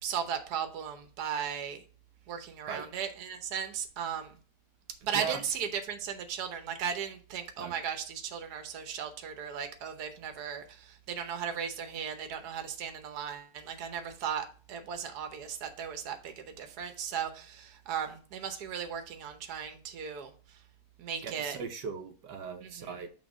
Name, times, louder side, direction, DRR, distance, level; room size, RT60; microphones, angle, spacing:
voice 1, 0.0-1.8 2.3-4.3 5.0-20.3 21.0-21.6 22.6-22.9, right 8 dB, 75° right, 7 dB, 1.5 m, -36 dB
voice 2, 21.2-23.1, right 6 dB, 90° right, 5 dB, 1.5 m, -38 dB
6.2 x 3.9 x 4.9 m, 0.39 s
omnidirectional pair, 1.8 m